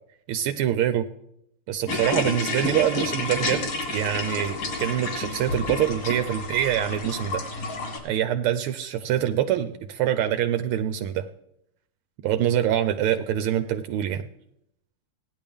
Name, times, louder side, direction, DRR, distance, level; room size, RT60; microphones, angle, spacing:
voice 1, 0.3-1.1 1.7-7.4 8.0-11.3 12.2-14.3, right 11 dB, 80° right, 10 dB, 1.5 m, -25 dB
sound 1, 1.9-8.0, left 2 dB, 85° left, 3.0 m, -29 dB
17.0 x 10.5 x 3.5 m, 0.78 s
omnidirectional pair, 2.4 m